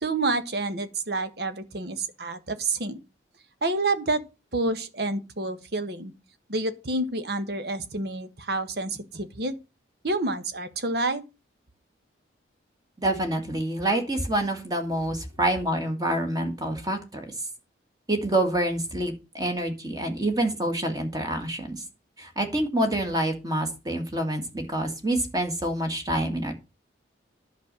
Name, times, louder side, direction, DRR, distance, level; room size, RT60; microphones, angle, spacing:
voice 1, 0.0-3.0 3.6-4.2 4.5-6.1 6.5-9.5 10.0-11.2, right 2 dB, 55° right, 1.3 m, -28 dB
voice 2, 13.0-17.3 18.1-21.8 22.2-26.5, right 1 dB, 20° right, 2.1 m, -27 dB
10.5 x 5.5 x 7.6 m
head